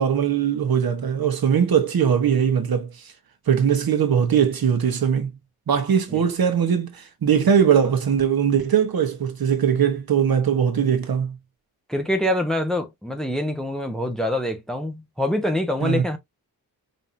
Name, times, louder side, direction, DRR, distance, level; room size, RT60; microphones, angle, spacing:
voice 1, 0.0-3.1 3.5-5.4 5.7-11.4 15.8-16.0, right 8 dB, 70° right, 1.2 m, -20 dB
voice 2, 11.9-16.2, left 1 dB, ahead, 0.9 m, -25 dB
5.4 x 2.9 x 2.6 m
wide cardioid pair, 110°, 37 cm